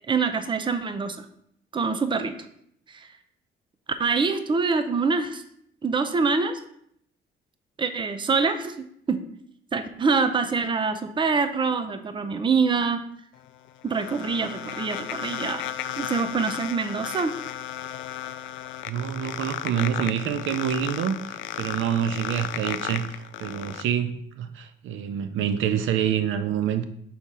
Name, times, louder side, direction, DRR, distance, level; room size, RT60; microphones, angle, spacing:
voice 1, 0.1-1.2 1.7-2.4 2.9-3.1 4.0-5.4 5.8-6.6 7.8-9.2 9.7-13.0 13.8-15.6 16.0-17.3, right 4 dB, 25° right, 9 dB, 0.5 m, -25 dB
sound 1, 13.4-23.8, left 11 dB, 75° left, 0.4 m, -34 dB
voice 2, 18.9-26.8, right 9 dB, 80° right, 10 dB, 0.5 m, -27 dB
6.0 x 3.8 x 4.1 m, 0.71 s
cardioid pair, 90°, 20 cm